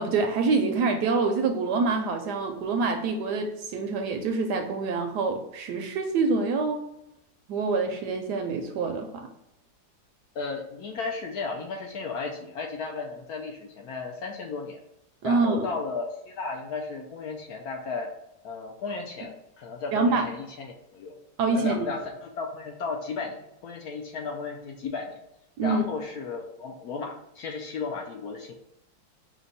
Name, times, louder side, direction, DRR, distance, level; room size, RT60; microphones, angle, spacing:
voice 1, 0.0-6.8 7.5-9.3 15.2-15.7 19.9-20.3 21.4-21.9 25.6-25.8, right 4 dB, 70° right, 5 dB, 1.0 m, -26 dB
voice 2, 10.3-14.8 15.2-18.1 18.4-21.2 21.5-25.2 25.6-28.5, left 4 dB, 70° left, 1 dB, 0.9 m, -34 dB
5.1 x 2.2 x 3.9 m, 0.83 s
omnidirectional pair, 2.0 m